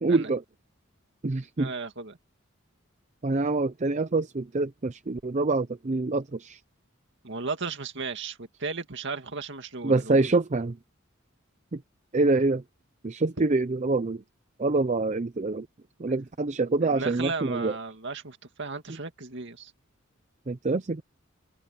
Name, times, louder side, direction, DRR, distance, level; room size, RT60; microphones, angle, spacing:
voice 1, 0.0-0.4 1.2-1.7 3.2-6.6 9.8-10.8 11.7-11.8 12.1-12.6 13.0-14.2 14.6-15.7 16.0-17.7 20.5-21.0, right 3 dB, 35° right, 0.6 m, -26 dB
voice 2, 1.6-2.2 7.2-10.3 13.4-13.5 16.8-19.7, right 4 dB, 60° right, 2.2 m, -35 dB
open air
head